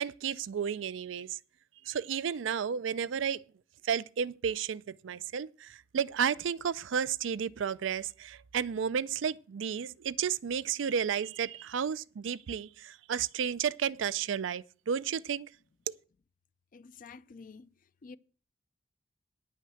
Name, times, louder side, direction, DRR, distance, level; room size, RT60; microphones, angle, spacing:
voice 1, 0.0-1.4 1.8-3.4 3.8-15.5 15.9-16.0, right 7 dB, 85° right, 0.4 m, -32 dB
voice 2, 16.7-17.7 18.0-18.2, left 4 dB, 45° left, 0.5 m, -49 dB
10.0 x 5.8 x 7.6 m
head